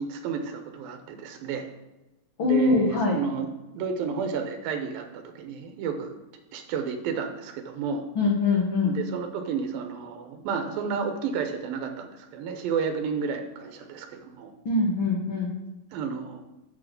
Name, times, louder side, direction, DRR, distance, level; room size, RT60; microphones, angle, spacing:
voice 1, 0.0-1.7 2.4-6.1 6.5-8.1 8.8-14.5 15.9-16.4, right 6 dB, 85° right, 6 dB, 2.6 m, -31 dB
voice 2, 2.4-3.1 8.1-8.9 14.6-15.5, left 3 dB, 75° left, -1 dB, 1.1 m, -23 dB
6.7 x 6.1 x 6.5 m, 1.0 s
omnidirectional pair, 4.0 m